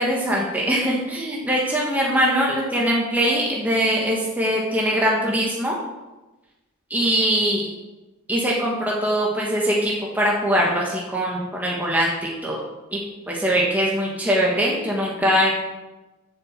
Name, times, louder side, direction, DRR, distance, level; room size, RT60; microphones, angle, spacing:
voice 1, 0.0-5.8 6.9-7.7 8.3-12.6 12.9-13.0 13.3-15.5, equal, 10° right, -4 dB, 1.4 m, -22 dB
8.1 x 7.2 x 7.4 m, 1.1 s
head